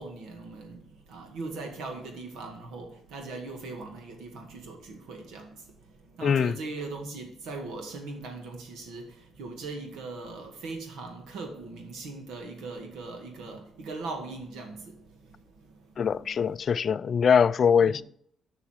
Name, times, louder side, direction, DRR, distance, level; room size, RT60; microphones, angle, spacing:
voice 1, 0.0-5.6 6.2-14.9 16.1-16.2 17.8-18.0, right 3 dB, 85° right, 1.9 m, -39 dB
voice 2, 6.2-6.5 16.0-18.0, left 7 dB, 50° left, 0.3 m, -22 dB
7.2 x 5.7 x 6.5 m
cardioid pair, 90°, 0 cm